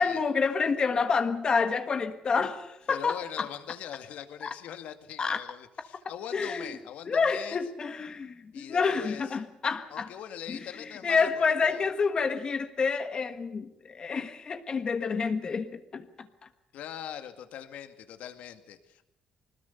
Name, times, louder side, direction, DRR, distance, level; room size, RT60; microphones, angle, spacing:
voice 1, 0.0-3.5 4.4-4.5 5.2-5.4 6.3-6.7 7.0-10.1 10.5-16.3, left 5 dB, 35° left, 1.5 m, -28 dB
voice 2, 2.9-7.6 8.5-9.4 9.9-11.9 16.7-19.0, left 10 dB, 75° left, 2.1 m, -42 dB
22.0 x 20.0 x 6.9 m
cardioid pair, 120°, 2 cm